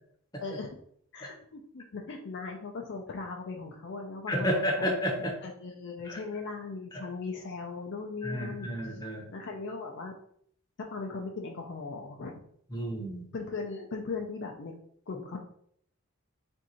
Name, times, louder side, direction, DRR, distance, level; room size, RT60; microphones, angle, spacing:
voice 1, 0.4-0.8 1.1-4.9 5.4-8.7 9.3-10.1 10.9-12.5 13.3-14.7 15.1-15.4, left 4 dB, 50° left, 1 dB, 0.5 m, -38 dB
voice 2, 4.3-5.4 6.1-6.2 6.9-7.0 8.2-9.3 12.7-13.3, equal, 15° left, 0 dB, 0.8 m, -31 dB
3.6 x 2.6 x 4.2 m, 0.65 s
head